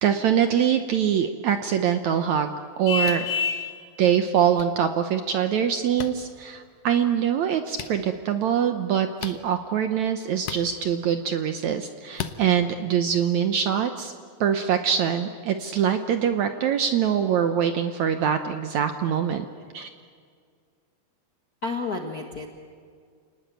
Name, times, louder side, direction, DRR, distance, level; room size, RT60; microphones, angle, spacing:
voice 1, 0.0-3.3 4.0-14.1 14.4-19.5 19.7-19.9, right 8 dB, 70° right, 8 dB, 1.9 m, -24 dB
Vehicle horn car horn honking, 2.9-3.7, left 6 dB, 85° left, 5.4 m, -26 dB
sound 1, 3.0-3.3 4.6-4.7 6.0-6.1 7.7-7.9 9.2-9.4 10.4-10.7 12.1-12.4, left 9 dB, 65° left, 2.0 m, -34 dB
voice 2, 21.6-22.5, left 3 dB, 45° left, 2 dB, 1.2 m, -30 dB
29.5 x 19.5 x 9.2 m, 2.1 s
omnidirectional pair, 4.2 m